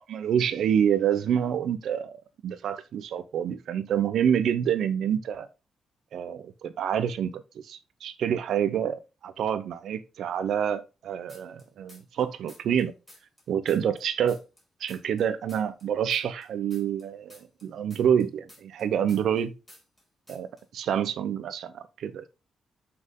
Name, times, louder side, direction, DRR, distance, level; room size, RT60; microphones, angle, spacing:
voice 1, 0.0-2.2 2.4-5.5 6.1-12.9 13.5-14.4 14.8-19.5 20.3-20.5 20.7-22.3, right 8 dB, 80° right, 1.0 m, -27 dB
sound 1, 11.3-12.2 12.5-15.2 15.5-19.4 19.7-20.0 20.3-20.6, left 1 dB, 10° left, 4.6 m, -53 dB
7.6 x 6.0 x 4.0 m
cardioid pair, 140°, 0 cm